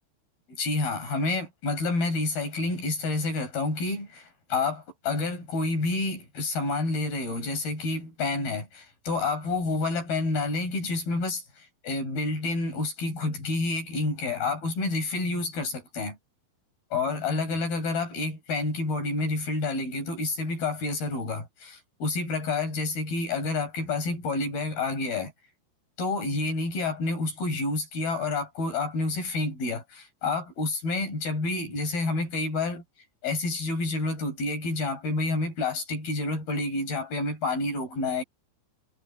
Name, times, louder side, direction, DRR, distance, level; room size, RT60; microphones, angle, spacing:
voice 1, 0.6-16.2 16.9-25.3 26.0-32.8 33.2-38.2, left 3 dB, 55° left, 9.3 m, -29 dB
omnidirectional pair, 5.1 m